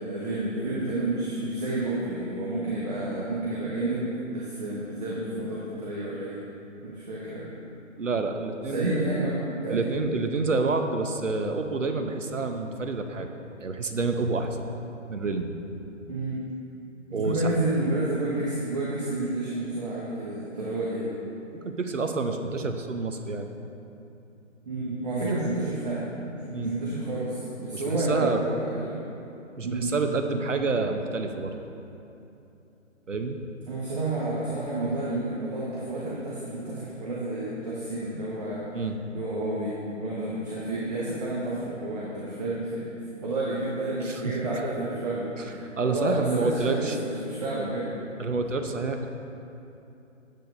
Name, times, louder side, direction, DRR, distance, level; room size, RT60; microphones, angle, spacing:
voice 1, 0.0-6.4 6.8-7.5 8.7-9.9 16.1-16.5 17.1-21.1 24.7-29.0 29.6-29.9 33.7-38.6 39.1-42.8 43.2-47.9, right 2 dB, 35° right, -6 dB, 1.2 m, -30 dB
voice 2, 8.0-8.9 9.7-13.3 13.6-14.5 15.1-15.5 17.1-17.5 21.6-23.5 26.5-26.7 27.7-28.4 29.6-31.6 33.1-33.4 38.7-39.0 44.0-44.2 45.8-47.0 48.2-49.1, right 3 dB, 75° right, 6 dB, 0.8 m, -28 dB
10.0 x 8.4 x 2.6 m, 2.9 s
figure-of-eight pair, 140°, 38 cm